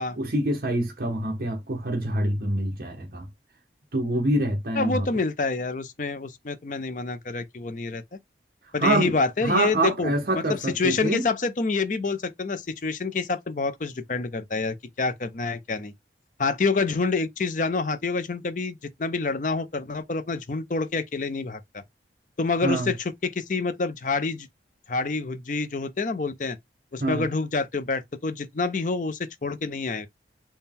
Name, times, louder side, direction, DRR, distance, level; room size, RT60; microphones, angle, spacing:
voice 1, 0.2-3.3 3.9-5.1 8.8-9.1 9.4-11.3 22.6-22.9 27.0-27.3, right 1 dB, 55° right, 0.9 m, -25 dB
voice 2, 4.8-8.2 8.7-15.9 16.4-21.8 22.4-24.5 24.9-26.6 26.9-30.1, left 4 dB, 45° left, 0.5 m, -27 dB
4.2 x 2.2 x 3.6 m
head